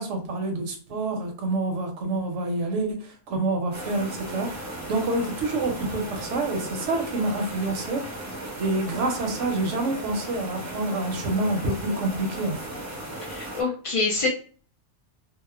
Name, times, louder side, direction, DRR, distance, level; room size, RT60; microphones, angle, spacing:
voice 1, 0.0-8.1 8.6-12.7, right 2 dB, 80° right, 3 dB, 1.0 m, -27 dB
sound 1, 3.7-13.6, right 1 dB, 20° right, 0.4 m, -36 dB
voice 2, 13.2-14.3, left 3 dB, 60° left, -2 dB, 0.3 m, -26 dB
3.0 x 2.0 x 2.3 m, 0.41 s
omnidirectional pair, 1.2 m